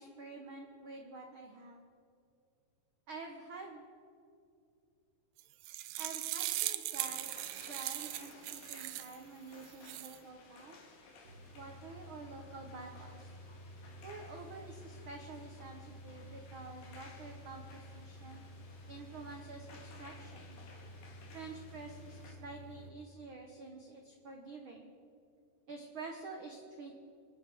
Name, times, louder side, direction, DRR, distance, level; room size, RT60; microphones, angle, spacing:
voice 1, 0.0-1.8 3.1-3.8 6.0-10.8 11.5-13.3 14.0-18.4 18.9-20.6 21.3-24.9 25.7-27.0, right 3 dB, 70° right, 3 dB, 1.2 m, -48 dB
sound 1, 5.4-9.2 9.6-10.2, right 15 dB, 85° right, 2.4 m, -39 dB
sound 2, 7.0-22.3, left 3 dB, 70° left, 3.4 m, -58 dB
sound 3, 11.2-22.9, equal, 40° right, 1.3 m, -52 dB
25.5 x 10.0 x 5.4 m, 2.5 s
omnidirectional pair, 4.0 m